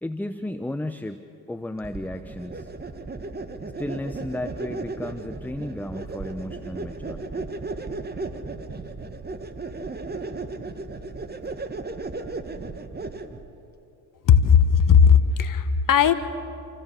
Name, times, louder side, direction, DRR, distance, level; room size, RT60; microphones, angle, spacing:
voice 1, 0.0-1.2 1.5-2.7 3.8-7.4, left 1 dB, 5° left, 9 dB, 0.9 m, -33 dB
sound 1, 1.8-13.5, right 3 dB, 20° right, 1.7 m, -35 dB
voice 2, 14.3-16.1, left 7 dB, 50° left, 10 dB, 1.4 m, -17 dB
27.5 x 16.0 x 7.6 m, 2.7 s
hypercardioid pair, 60°, 43 cm